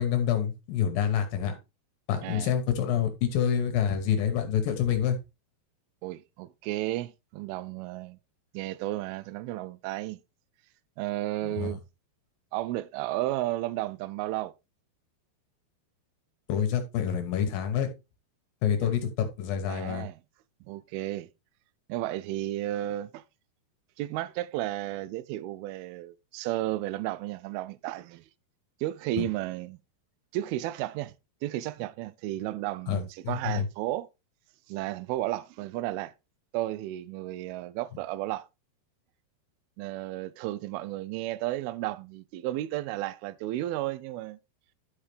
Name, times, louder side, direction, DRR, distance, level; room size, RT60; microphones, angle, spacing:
voice 1, 0.0-1.5 2.1-5.2 11.4-11.8 16.5-17.9 18.6-20.1 29.2-29.3 32.9-33.7, left 9 dB, 70° left, 2.5 m, -27 dB
voice 2, 2.2-2.5 6.0-8.2 8.5-10.2 11.0-11.8 12.5-14.5 18.8-18.9 19.7-20.2 20.7-21.3 21.9-23.2 24.0-28.2 28.8-29.8 30.3-31.1 31.4-34.1 34.7-36.1 36.5-38.5 39.8-44.4, right 15 dB, 80° right, 2.3 m, -33 dB
11.5 x 5.6 x 3.3 m
omnidirectional pair, 4.7 m